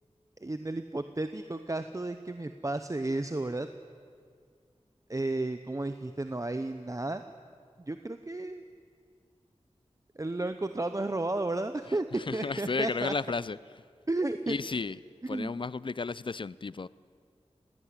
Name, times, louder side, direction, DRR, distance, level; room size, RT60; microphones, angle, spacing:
voice 1, 0.4-3.7 5.1-7.2 7.9-8.6 10.2-13.1 14.1-14.6 15.3-15.5, right 2 dB, 30° right, 9 dB, 0.8 m, -33 dB
voice 2, 11.9-13.6 14.5-15.0 15.3-16.9, left 4 dB, 45° left, 20 dB, 0.5 m, -33 dB
19.5 x 17.5 x 9.8 m, 2.1 s
wide cardioid pair, 70°, 12 cm